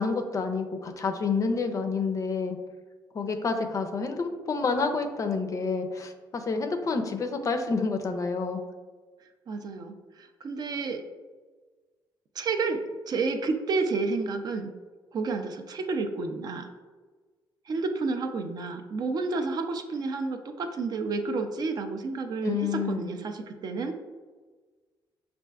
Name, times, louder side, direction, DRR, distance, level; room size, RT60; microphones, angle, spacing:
voice 1, 0.0-2.6 3.1-8.6 22.4-23.1, left 4 dB, 40° left, 6 dB, 0.4 m, -28 dB
voice 2, 9.5-11.0 12.4-14.7 15.1-16.7 17.7-23.9, right 4 dB, 50° right, 5 dB, 0.4 m, -30 dB
5.6 x 2.4 x 2.3 m, 1.4 s
cardioid pair, 110°, 9 cm